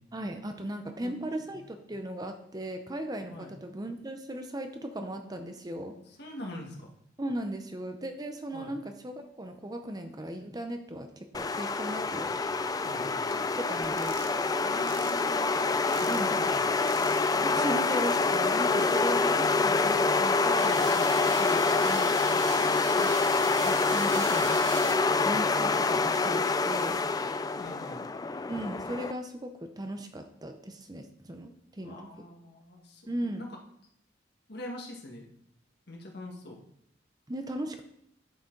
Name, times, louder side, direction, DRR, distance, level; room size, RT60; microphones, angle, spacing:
voice 1, 0.1-6.0 7.2-12.3 13.3-14.2 16.1-16.6 17.4-21.1 21.4-22.2 23.0-23.1 23.6-24.7 25.2-27.0 28.5-32.3 33.1-33.5 37.3-37.8, right 1 dB, 20° right, 6 dB, 0.7 m, -37 dB
voice 2, 6.2-6.9 8.5-8.8 12.8-13.2 14.6-16.8 19.4-19.7 20.5-20.9 25.2-25.3 27.6-28.0 31.8-33.5 34.5-35.3 35.9-36.6, left 1 dB, 55° left, 0 dB, 1.7 m, -44 dB
sound 1, 11.3-29.1, left 4 dB, 20° left, 0.3 m, -26 dB
sound 2, 13.8-14.3 14.9-15.1 15.9-16.3 16.9-17.3 18.0-18.3 18.9-19.0 20.6-25.0, right 7 dB, 80° right, 1.0 m, -41 dB
10.5 x 6.7 x 3.9 m, 0.73 s
head